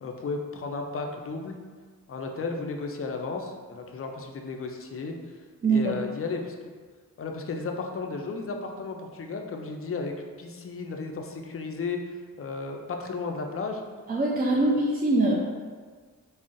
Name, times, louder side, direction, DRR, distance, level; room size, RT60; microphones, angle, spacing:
voice 1, 0.0-1.6 2.1-5.3 5.7-6.6 7.2-10.1 10.4-13.8 14.5-14.6, left 4 dB, 40° left, 3 dB, 0.4 m, -34 dB
voice 2, 5.6-6.0 14.1-15.4, right 2 dB, 25° right, -4 dB, 0.4 m, -23 dB
3.6 x 2.0 x 2.5 m, 1.5 s
cardioid pair, 45°, 37 cm